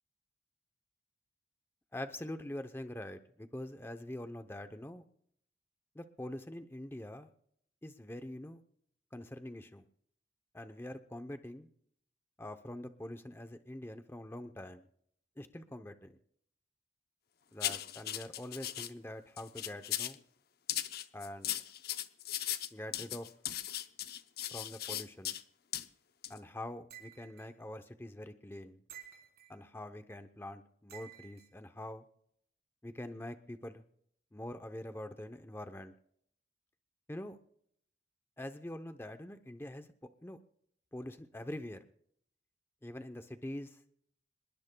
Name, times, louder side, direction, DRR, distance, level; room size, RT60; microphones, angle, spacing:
voice 1, 1.9-5.0 5.9-7.3 7.8-8.6 9.1-9.8 10.5-11.7 12.4-14.9 15.4-16.1 17.5-20.2 21.1-21.6 22.7-23.3 24.5-25.4 26.3-28.8 29.5-32.0 32.8-33.8 34.3-35.9 37.1-37.4 38.4-39.9 40.2-40.4 40.9-41.8 42.8-43.8, left 1 dB, 15° left, 8 dB, 0.7 m, -44 dB
sound 1, 17.6-18.9 19.4-20.2 20.7-25.4 25.7-25.9 26.2-26.4, left 12 dB, 60° left, 0.7 m, -37 dB
sound 2, 26.9-27.5 28.9-29.6 30.9-31.5, right 11 dB, 60° right, 3.5 m, -52 dB
26.5 x 21.0 x 2.3 m, 0.69 s
head